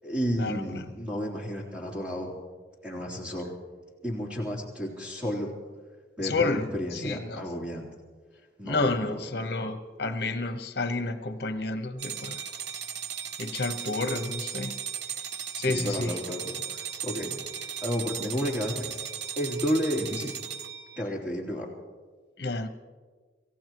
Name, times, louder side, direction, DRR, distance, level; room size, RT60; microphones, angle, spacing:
voice 1, 0.0-2.3 2.8-3.5 4.0-5.5 6.2-7.9 8.6-9.1 15.7-17.4 17.8-18.9 19.4-20.3 21.0-21.7, equal, 5° right, -4 dB, 3.4 m, -31 dB
voice 2, 6.2-7.5 8.6-12.4 13.4-14.8 15.6-16.2 22.4-22.7, left 3 dB, 60° left, 8 dB, 1.1 m, -30 dB
sound 1, 12.0-21.0, right 8 dB, 70° right, 0.9 m, -37 dB
27.0 x 15.5 x 3.1 m, 1.5 s
head